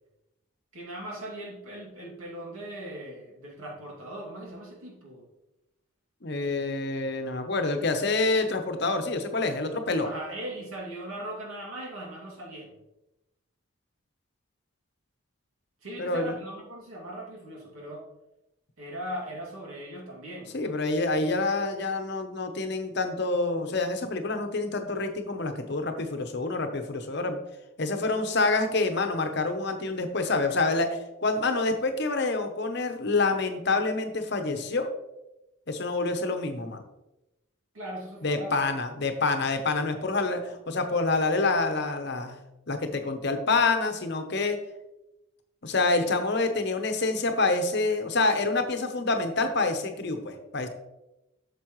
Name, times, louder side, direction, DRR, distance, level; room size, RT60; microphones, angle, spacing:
voice 1, 0.7-5.2 10.0-12.7 15.8-18.1 18.8-20.5 37.7-38.7, right 1 dB, 80° right, -3 dB, 2.6 m, -39 dB
voice 2, 6.2-10.1 16.0-16.4 20.5-27.4 27.8-34.9 35.7-36.8 38.2-42.4 42.7-44.6 45.6-50.7, left 3 dB, 50° left, 6 dB, 0.9 m, -27 dB
8.5 x 6.8 x 3.1 m, 0.94 s
head